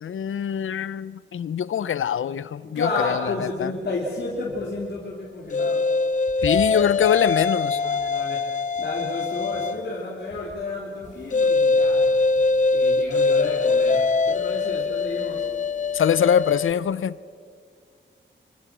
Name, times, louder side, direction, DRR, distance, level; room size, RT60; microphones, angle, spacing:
voice 1, 0.0-3.3 3.6-3.7 6.4-7.8 15.9-17.2, left 8 dB, 90° left, 0.7 m, -23 dB
voice 2, 2.6-5.9 7.7-8.5 8.8-12.1 12.7-15.5, left 2 dB, 55° left, 3.5 m, -31 dB
sound 1, 5.5-9.9 11.3-16.7, left 3 dB, 40° left, 0.5 m, -22 dB
26.0 x 25.5 x 6.2 m
wide cardioid pair, 150°, 20 cm